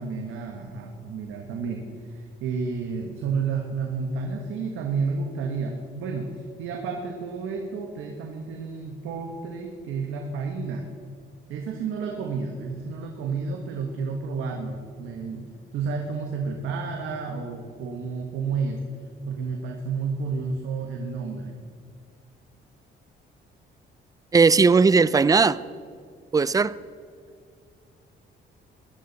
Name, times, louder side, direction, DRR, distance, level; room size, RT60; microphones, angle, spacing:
voice 1, 0.0-6.3 6.6-10.8 11.5-15.4 15.7-18.8 19.3-21.5, right 5 dB, 85° right, 1.4 m, -31 dB
voice 2, 24.3-25.6 26.3-26.7, right 4 dB, 20° right, 0.4 m, -18 dB
19.0 x 11.5 x 4.1 m
cardioid pair, 90°, 20 cm